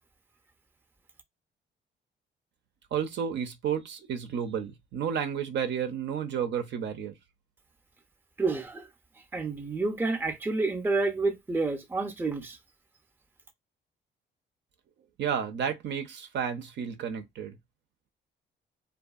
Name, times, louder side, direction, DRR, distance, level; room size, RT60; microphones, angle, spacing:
voice 1, 2.9-7.1 15.2-17.6, right 8 dB, 65° right, 0.5 m, -31 dB
voice 2, 8.4-8.9 9.3-12.6, right 3 dB, 10° right, 0.5 m, -29 dB
2.6 x 2.3 x 2.3 m
cardioid pair, 90°, 20 cm